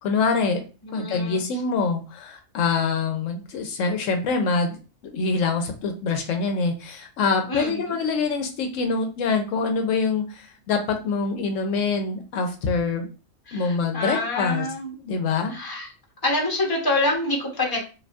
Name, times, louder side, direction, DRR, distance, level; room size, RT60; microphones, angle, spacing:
voice 1, 0.0-0.6 0.9-4.8 5.0-13.1 13.5-14.7 14.9-15.5, left 4 dB, 75° left, 5 dB, 0.9 m, -25 dB
voice 2, 0.8-1.4 7.5-8.0 13.5-14.9 15.5-15.9 16.2-17.8, left 2 dB, 20° left, -1 dB, 0.9 m, -26 dB
4.9 x 2.6 x 2.3 m, 0.34 s
omnidirectional pair, 1.3 m